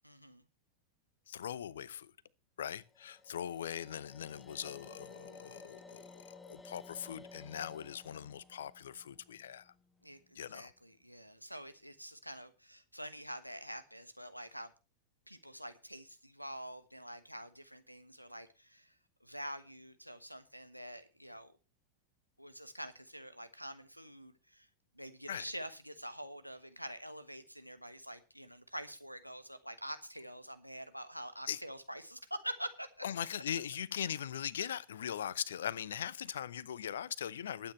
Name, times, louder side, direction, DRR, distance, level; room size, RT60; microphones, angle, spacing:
voice 1, 0.0-0.4 10.0-10.2 10.5-14.7 15.3-18.9 19.2-21.5 22.4-24.7 25.0-32.9, equal, 90° right, 1.2 m, -46 dB
voice 2, 1.3-2.1 2.6-9.7 10.3-10.7 25.3-25.5 31.5-31.6 33.0-37.7, left 9 dB, 65° left, 0.7 m, -40 dB
sound 1, 2.9-10.0, left 3 dB, 10° left, 0.9 m, -56 dB
20.0 x 9.1 x 3.1 m
figure-of-eight pair, 90°, 0 cm